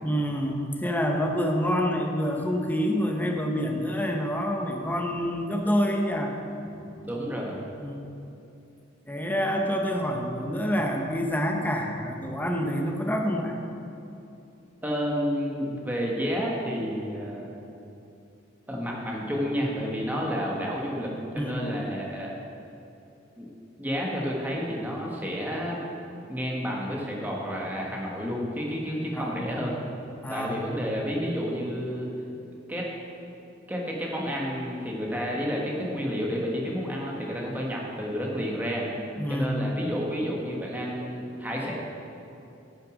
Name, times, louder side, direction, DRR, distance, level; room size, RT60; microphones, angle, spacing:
voice 1, 0.0-6.3 6.6-7.0 7.8-8.0 9.1-13.6 20.1-20.2 21.4-21.6 29.1-29.4 30.2-30.7 39.2-39.6, equal, 10° left, 1 dB, 0.9 m, -27 dB
voice 2, 7.0-7.6 14.8-17.6 18.7-22.3 23.4-23.5 23.8-25.8 26.3-29.8 30.3-32.1 32.7-32.9 33.7-38.9 39.3-41.7, equal, 10° right, -3 dB, 1.5 m, -30 dB
9.9 x 6.6 x 6.4 m, 2.8 s
head